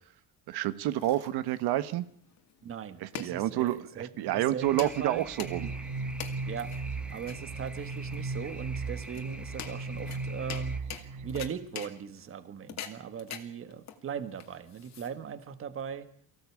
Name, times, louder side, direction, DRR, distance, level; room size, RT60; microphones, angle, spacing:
voice 1, 0.5-2.1 3.0-5.7, right 14 dB, 85° right, 13 dB, 1.3 m, -29 dB
sound 1, 0.6-15.5, left 9 dB, 45° left, 2.3 m, -46 dB
voice 2, 2.6-5.3 6.5-10.8 11.2-16.1, right 7 dB, 35° right, 12 dB, 1.4 m, -39 dB
sound 2, 4.6-10.8, right 1 dB, 5° right, 0.8 m, -47 dB
sound 3, 5.4-11.5, right 3 dB, 50° right, 1.3 m, -37 dB
23.5 x 16.0 x 8.5 m, 0.62 s
cardioid pair, 170°, 38 cm